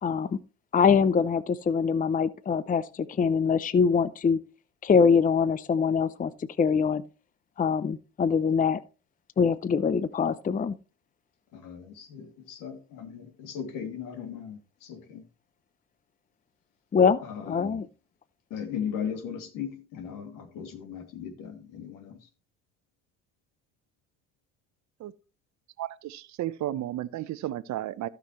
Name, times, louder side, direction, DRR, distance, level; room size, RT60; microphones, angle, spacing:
voice 1, 0.0-0.4 0.7-4.4 4.8-6.3 6.6-7.0 7.6-8.8 9.4-10.8 16.9-17.9, left 6 dB, 25° left, 0.6 m, -23 dB
voice 2, 11.5-15.2 17.2-17.8 18.5-22.3, left 8 dB, 70° left, 2.5 m, -37 dB
voice 3, 25.8-28.1, right 13 dB, 55° right, 0.8 m, -33 dB
16.0 x 6.1 x 3.1 m
hypercardioid pair, 70°, 34 cm